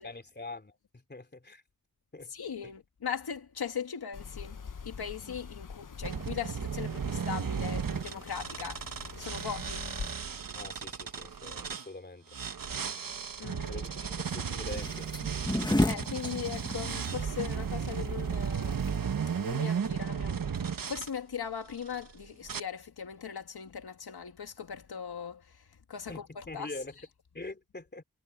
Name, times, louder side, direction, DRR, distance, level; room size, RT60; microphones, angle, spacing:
voice 1, 0.0-1.6 2.1-2.3 2.6-2.7 10.5-12.2 13.7-15.1 26.1-27.0 27.3-28.0, left 2 dB, 30° left, 3.2 m, -44 dB
voice 2, 2.3-4.6 4.8-8.8 9.2-9.8 13.4-13.8 15.5-18.7 19.4-25.4 25.9-26.7, left 7 dB, 85° left, 2.3 m, -39 dB
sound 1, 4.1-10.1, left 6 dB, 55° left, 1.3 m, -45 dB
sound 2, 6.0-11.9 12.3-21.1 21.7-22.1 22.5-22.6, right 7 dB, 60° right, 1.4 m, -35 dB
sound 3, 14.7-19.8, left 1 dB, 10° left, 1.8 m, -32 dB
wide cardioid pair, 100°, 37 cm